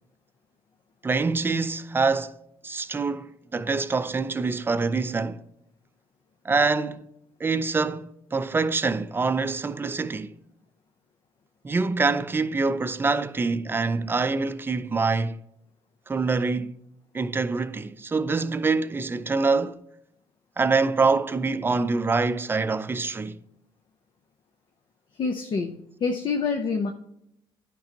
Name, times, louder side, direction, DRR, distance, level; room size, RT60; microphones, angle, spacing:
voice 1, 1.0-2.4 2.6-5.4 6.4-7.1 7.4-10.3 11.6-15.4 16.1-16.7 17.1-19.8 20.6-23.4, right 4 dB, 20° right, 0.5 m, -25 dB
voice 2, 25.2-26.9, left 4 dB, 50° left, 0.7 m, -27 dB
10.0 x 5.3 x 2.9 m
supercardioid pair, 75°, 10 cm